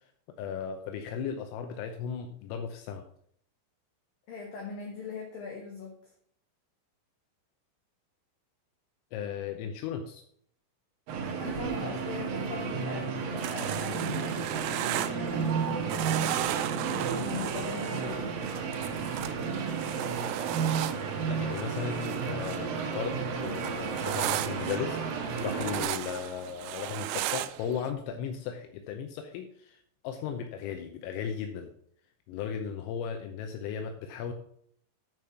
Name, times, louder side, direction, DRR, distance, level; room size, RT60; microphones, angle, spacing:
voice 1, 0.4-3.0 9.1-10.2 21.3-25.0 25.4-31.7 32.3-34.3, left 7 dB, 85° left, 5 dB, 3.4 m, -36 dB
voice 2, 4.3-6.1 11.2-18.5, left 5 dB, 65° left, 0 dB, 2.3 m, -41 dB
sound 1, 11.1-25.8, right 5 dB, 65° right, 2.4 m, -32 dB
sound 2, 13.4-15.6 15.9-22.7 23.0-27.9, right 14 dB, 85° right, 2.7 m, -35 dB
9.8 x 5.4 x 5.7 m, 0.64 s
omnidirectional pair, 5.9 m